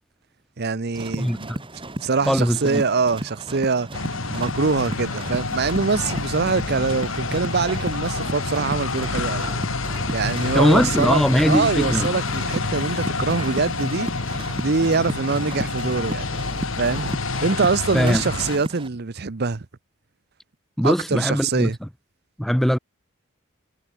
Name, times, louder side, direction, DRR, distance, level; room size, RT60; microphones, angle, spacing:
voice 1, 0.6-1.5 2.0-9.5 10.1-14.1 14.6-16.3 16.7-17.1 17.4-19.7 20.8-21.8, right 4 dB, 50° right, 0.8 m, -24 dB
sound 1, 0.9-18.9, right 1 dB, 25° right, 3.2 m, -34 dB
voice 2, 1.2-1.6 2.3-2.8 10.5-12.1 17.9-18.2 20.8-21.7 22.4-22.8, equal, ahead, 0.5 m, -20 dB
sound 2, 3.9-18.6, left 3 dB, 70° left, 1.9 m, -28 dB
head